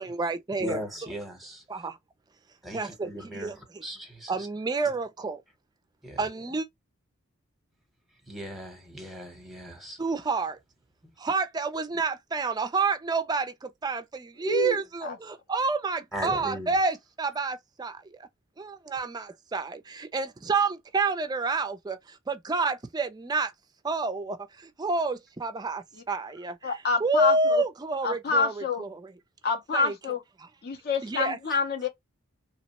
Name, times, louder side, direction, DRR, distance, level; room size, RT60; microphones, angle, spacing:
voice 1, 0.0-0.8 1.7-2.0 2.7-3.8 4.3-5.4 6.2-6.7 10.0-10.6 11.2-18.3 18.6-23.5 23.8-29.1 29.7-30.0 30.4-30.5 31.0-31.4, right 3 dB, 20° right, 0.3 m, -29 dB
voice 2, 0.6-1.6 2.6-4.5 6.0-6.3 8.2-10.0 11.0-11.1 16.1-16.8, equal, ahead, 0.8 m, -38 dB
voice 3, 14.4-14.7 15.0-15.1 26.6-27.6 28.0-28.8 29.4-30.2 30.6-31.9, left 4 dB, 45° left, 0.5 m, -27 dB
2.9 x 2.1 x 2.7 m
head